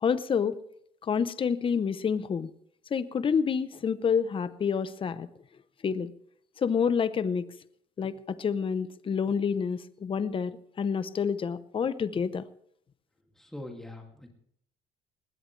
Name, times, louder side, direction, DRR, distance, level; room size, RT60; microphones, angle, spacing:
voice 1, 0.0-0.6 1.0-2.5 2.9-5.3 5.8-6.1 6.6-7.5 8.0-12.5, left 6 dB, 30° left, 15 dB, 0.7 m, -28 dB
voice 2, 13.4-14.3, left 1 dB, ahead, 1 dB, 2.3 m, -42 dB
19.5 x 17.0 x 3.2 m, 0.69 s
cardioid pair, 110°, 17 cm